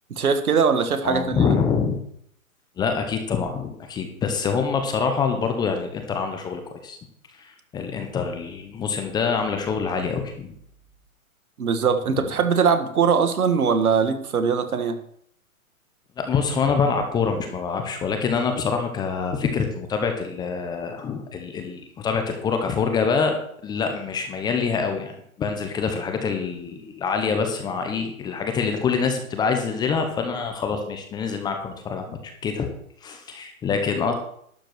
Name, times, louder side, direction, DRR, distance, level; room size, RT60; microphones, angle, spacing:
voice 1, 0.1-1.5 11.6-15.0, right 6 dB, 85° right, 8 dB, 1.7 m, -21 dB
voice 2, 1.0-2.0 2.8-7.0 7.4-10.5 16.2-23.4 23.6-32.7 33.0-34.1, left 5 dB, 10° left, 5 dB, 0.8 m, -25 dB
12.0 x 4.7 x 7.7 m, 0.68 s
hypercardioid pair, 145°, 42 cm